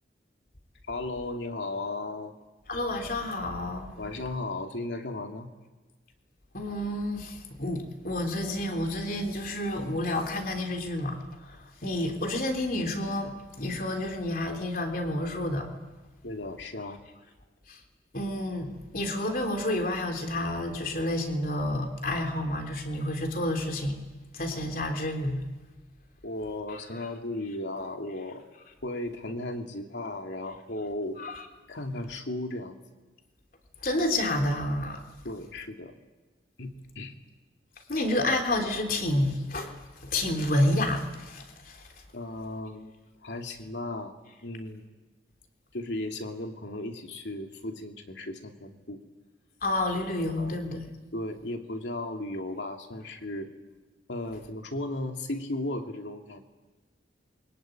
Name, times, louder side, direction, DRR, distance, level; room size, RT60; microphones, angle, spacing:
voice 1, 0.9-2.3 4.0-5.5 16.2-17.0 26.2-28.4 28.8-31.2 31.7-32.8 35.2-35.9 36.6-37.1 42.1-42.9 43.2-44.1 44.4-44.8 45.7-49.0 50.4-50.6 51.1-53.5 54.1-56.4, left 2 dB, 85° left, 4 dB, 2.6 m, -35 dB
voice 2, 2.7-4.0 6.5-15.7 17.7-17.8 18.1-24.0 24.3-25.4 31.2-31.4 33.8-35.0 37.9-39.7 40.0-41.8 49.6-50.9, left 1 dB, 50° left, 4 dB, 3.3 m, -29 dB
27.5 x 23.5 x 9.2 m, 1.3 s
head